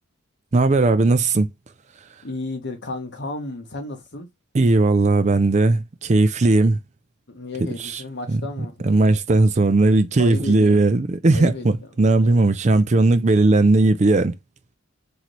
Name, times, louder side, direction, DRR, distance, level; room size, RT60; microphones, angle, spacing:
voice 1, 0.5-1.5 4.5-6.8 7.6-8.0 8.3-14.4, right 2 dB, 30° right, 0.4 m, -18 dB
voice 2, 2.2-4.3 7.3-8.7 10.2-10.8 11.3-11.7 12.2-12.5, left 2 dB, 50° left, 1.2 m, -33 dB
3.1 x 2.9 x 4.0 m
head